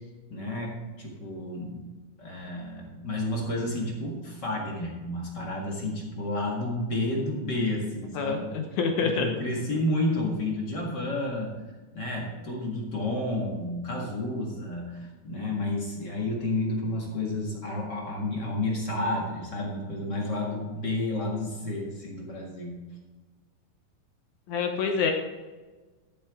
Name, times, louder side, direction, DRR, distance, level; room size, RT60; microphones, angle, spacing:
voice 1, 0.3-1.8 2.2-8.5 9.0-11.5 11.9-22.8, left 1 dB, 40° left, -2 dB, 1.6 m, -31 dB
voice 2, 8.2-9.3 24.5-25.1, left 5 dB, 70° left, 3 dB, 1.8 m, -27 dB
13.0 x 8.2 x 3.7 m, 1.3 s
omnidirectional pair, 4.6 m